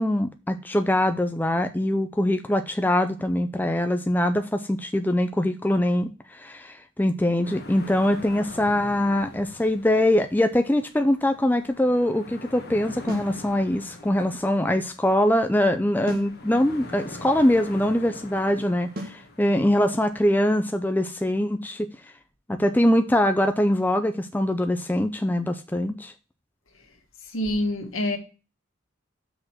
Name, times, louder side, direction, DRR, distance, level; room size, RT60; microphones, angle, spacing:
voice 1, 0.0-21.9 22.5-26.1, left 1 dB, 10° left, 0.4 m, -23 dB
sound 1, 7.4-20.2, left 2 dB, 50° left, 1.5 m, -44 dB
sound 2, 13.1-13.4 16.1-16.4 19.0-19.3, equal, 45° right, 1.8 m, -34 dB
voice 2, 27.2-28.2, left 1 dB, 75° left, 1.8 m, -27 dB
6.2 x 5.1 x 6.0 m
head